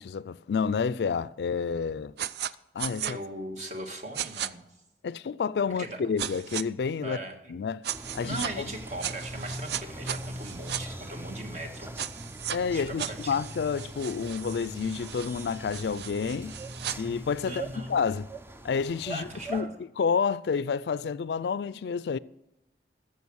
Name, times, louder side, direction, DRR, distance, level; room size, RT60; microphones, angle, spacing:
voice 1, 0.0-2.1 2.7-3.2 5.0-7.2 7.5-7.8 8.1-8.7 12.5-16.6 17.0-18.3 18.6-19.7 20.0-22.2, left 6 dB, 75° left, 0.4 m, -29 dB
sound 1, 2.2-2.5 2.8-3.1 4.1-4.5 6.2-6.6 7.8-8.5 9.0-10.8 12.0-12.6 13.0-17.0, right 10 dB, 70° right, 0.4 m, -36 dB
voice 2, 3.0-4.6 5.8-6.0 7.0-7.4 8.2-12.0 12.7-13.4 17.5-17.9 19.1-19.7, right 1 dB, 40° right, 1.7 m, -39 dB
sound 2, 7.9-19.6, right 1 dB, 15° right, 0.5 m, -41 dB
13.5 x 7.5 x 6.3 m
head